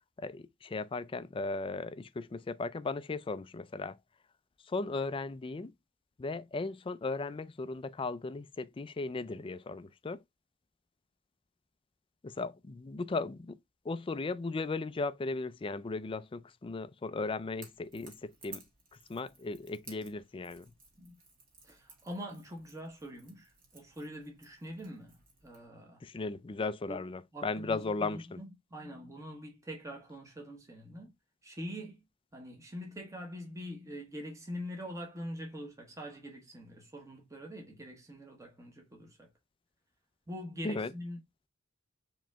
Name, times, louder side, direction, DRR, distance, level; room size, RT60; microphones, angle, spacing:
voice 1, 0.2-4.0 4.6-5.7 6.2-10.2 12.2-13.6 13.8-18.6 19.1-20.7 26.0-28.4 40.6-40.9, left 3 dB, 25° left, 0.4 m, -36 dB
Crackle / Crack, 17.5-25.7, right 3 dB, 45° right, 2.1 m, -57 dB
voice 2, 21.6-25.2 25.4-26.0 26.9-27.0 27.3-31.1 31.4-32.0 32.3-39.3 40.3-41.2, equal, 15° right, 1.0 m, -44 dB
4.9 x 3.0 x 3.4 m
head